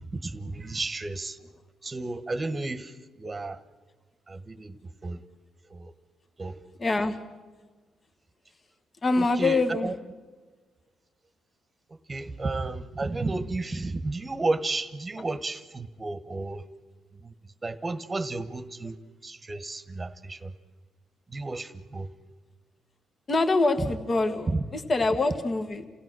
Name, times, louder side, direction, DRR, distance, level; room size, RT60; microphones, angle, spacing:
voice 1, 0.2-1.4 1.8-2.9 3.2-3.6 4.3-4.7 5.0-5.2 5.7-5.9 6.4-6.6 9.2-9.6 12.1-16.6 17.2-17.3 17.6-19.0 19.2-20.5 21.3-22.1, right 2 dB, 25° right, 11 dB, 1.2 m, -32 dB
voice 2, 6.8-7.2 9.0-9.9 15.1-15.2 23.3-25.9, left 3 dB, 35° left, 7 dB, 1.5 m, -25 dB
28.5 x 16.5 x 6.3 m, 1.4 s
cardioid pair, 90°, 0 cm